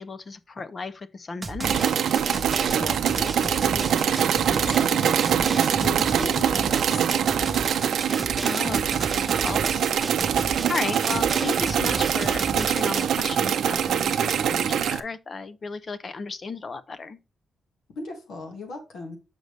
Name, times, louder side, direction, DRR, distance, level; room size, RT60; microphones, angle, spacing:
voice 1, 0.0-2.0 8.4-17.2, left 4 dB, 30° left, 0.4 m, -34 dB
Drum, 1.4-13.1, right 3 dB, 20° right, 0.6 m, -34 dB
sound 1, 1.6-15.0, right 9 dB, 75° right, 0.5 m, -24 dB
voice 2, 2.7-7.6 17.9-19.2, left 3 dB, 90° left, 1.6 m, -37 dB
6.6 x 5.1 x 3.2 m
wide cardioid pair, 180°, 0 cm